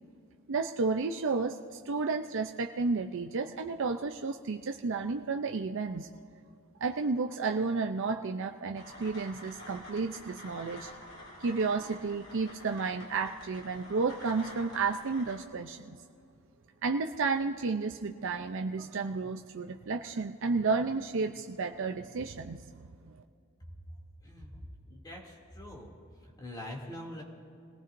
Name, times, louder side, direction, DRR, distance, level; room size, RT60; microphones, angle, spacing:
voice 1, 0.5-6.1 6.8-10.9 11.4-16.0 16.8-23.2, right 4 dB, 60° right, 4 dB, 0.6 m, -32 dB
sound 1, 8.7-15.4, left 1 dB, 90° left, 3.8 m, -48 dB
voice 2, 24.2-25.9 26.2-27.2, left 1 dB, 20° left, -2 dB, 2.7 m, -44 dB
26.5 x 18.5 x 2.6 m, 2.5 s
head